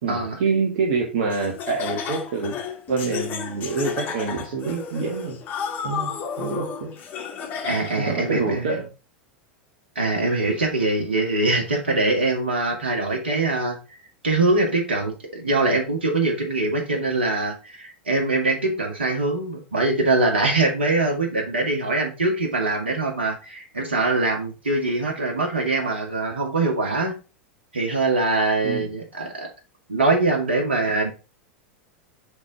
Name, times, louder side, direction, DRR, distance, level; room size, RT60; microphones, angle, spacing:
voice 1, 0.0-2.6 2.9-5.4 5.8-6.9 7.9-8.8 28.6-28.9, right 4 dB, 60° right, 1 dB, 1.4 m, -26 dB
Laughter, 1.3-8.1, left 6 dB, 35° left, 1.4 m, -32 dB
voice 2, 7.6-8.8 10.0-14.0 14.2-27.2 27.7-29.5 29.9-31.1, right 2 dB, 75° right, 1 dB, 2.1 m, -23 dB
5.1 x 4.2 x 4.8 m, 0.31 s
figure-of-eight pair, 90°, 6 cm